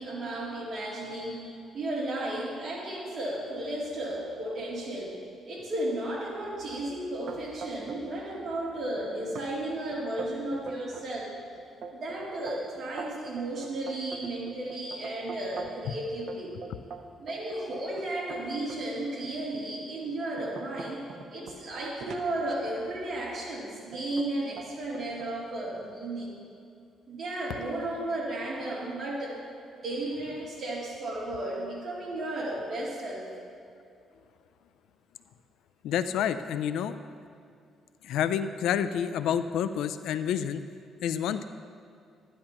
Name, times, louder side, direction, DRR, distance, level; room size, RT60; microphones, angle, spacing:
voice 1, 0.0-11.5 11.9-16.6 17.2-26.4 27.1-29.5 29.8-33.3, right 1 dB, 55° right, -5 dB, 2.9 m, -34 dB
sound 1, 7.3-8.2 8.5-9.0 9.4-9.5 9.9-11.1 11.6-15.9 16.3-18.8 19.4-19.6 20.1-23.1 23.9-24.3 24.6-25.3, right 5 dB, 70° right, 0.7 m, -43 dB
voice 2, 35.8-37.0 38.0-40.6 41.0-41.4, left 9 dB, 85° left, 12 dB, 0.4 m, -28 dB
13.0 x 10.5 x 3.0 m, 2.5 s
cardioid pair, 90°, 0 cm